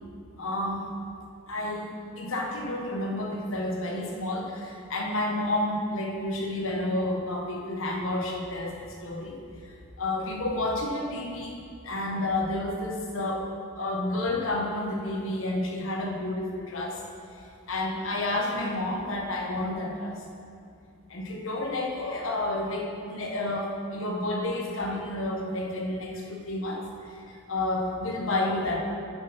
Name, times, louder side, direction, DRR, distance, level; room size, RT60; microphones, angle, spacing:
voice 1, 0.4-0.9 1.5-9.7 10.0-11.5 11.8-13.5 13.8-17.0 17.7-20.2 21.1-28.8, left 1 dB, 80° left, 0 dB, 1.3 m, -30 dB
9.7 x 6.8 x 4.3 m, 2.3 s
head